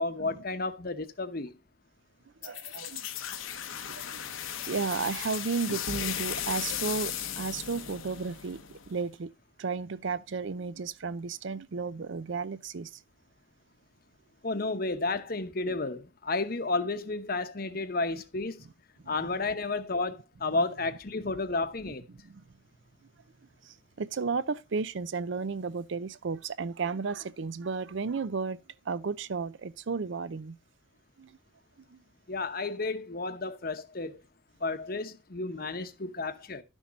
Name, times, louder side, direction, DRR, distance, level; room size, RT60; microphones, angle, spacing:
voice 1, 0.0-1.5 14.4-18.6 19.1-22.0 32.3-34.2 34.6-36.6, left 3 dB, 45° left, 0.9 m, -32 dB
sound 1, 2.4-9.0, left 9 dB, 75° left, 0.9 m, -36 dB
voice 2, 2.4-3.1 3.9-4.2 4.7-9.3 9.6-13.0 14.5-14.7 19.0-19.3 20.5-20.6 21.8-22.4 23.6-28.6 28.9-30.6 31.2-31.4 31.9-32.0, right 4 dB, 60° right, 0.5 m, -34 dB
12.0 x 6.3 x 4.0 m
head